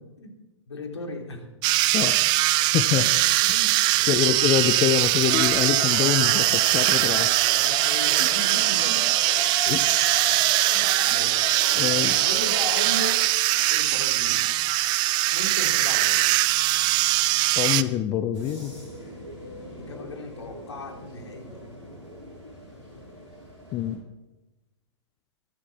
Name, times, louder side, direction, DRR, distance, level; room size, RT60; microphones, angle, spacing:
voice 1, 0.7-1.5 3.0-3.1 3.4-4.3 7.4-9.0 9.7-9.9 10.3-10.4 10.7-11.4 12.1-13.3 13.7-14.5 15.3-16.4 16.8-17.0 19.7-21.8, left 1 dB, 70° left, 3 dB, 3.6 m, -37 dB
sound 1, 1.6-17.8, right 17 dB, 30° right, 0.7 m, -22 dB
voice 2, 1.9-2.2 2.6-3.0 4.1-7.3 8.2-8.3 9.7-10.2 11.7-12.1 17.5-18.7 23.7-24.0, left 12 dB, 25° left, 12 dB, 0.8 m, -25 dB
Crowd, 5.2-13.3, left 3 dB, 50° left, 6.4 m, -37 dB
sound 2, 18.3-24.0, equal, 90° right, 6.5 m, -43 dB
23.5 x 11.5 x 4.3 m, 1.0 s
figure-of-eight pair, 110°, 15 cm